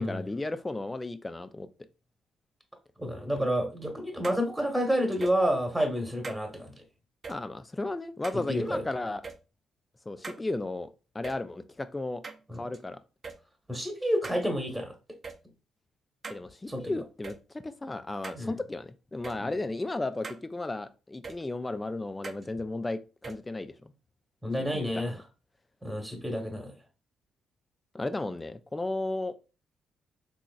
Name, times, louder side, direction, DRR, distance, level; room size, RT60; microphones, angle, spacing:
voice 1, 0.0-1.7 7.3-9.2 10.1-10.9 11.1-12.2 12.6-13.0 16.3-23.0 23.3-23.9 24.7-25.0 27.9-29.4, left 2 dB, 20° left, 11 dB, 0.4 m, -34 dB
voice 2, 3.0-6.7 8.5-8.8 12.5-12.6 13.7-14.9 16.7-16.9 18.3-18.5 19.4-19.5 24.4-25.2 25.8-26.7, equal, 5° right, 3 dB, 1.1 m, -29 dB
sound 1, 4.2-4.4 5.1-5.4 6.2-6.4 7.2-7.4 8.2-8.4 9.2-9.4 10.2-10.4 11.2-11.4 12.2-12.8 13.2-13.4 14.2-14.4 15.2-15.4 16.2-16.4 17.2-17.4 18.2-18.4 19.2-19.4 20.2-20.4 21.2-21.4 22.2-22.4 23.2-23.4, right 4 dB, 40° right, 0.6 m, -41 dB
3.8 x 2.9 x 2.4 m, 0.31 s
hypercardioid pair, 50°, 0 cm